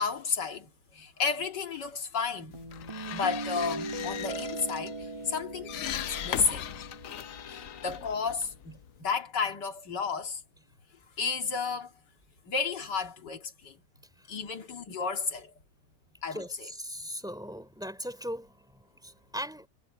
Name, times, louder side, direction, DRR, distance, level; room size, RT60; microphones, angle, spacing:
voice 1, 0.0-2.6 3.1-6.7 7.5-10.4 11.2-11.9 12.5-13.8 14.3-15.5 16.2-16.7, left 5 dB, 85° left, 2.7 m, -32 dB
sound 1, 2.5-9.0, left 10 dB, 60° left, 1.0 m, -39 dB
sound 2, 2.5-8.2, right 2 dB, 20° right, 3.1 m, -40 dB
voice 2, 16.3-19.7, equal, ahead, 3.2 m, -39 dB
omnidirectional pair, 1.8 m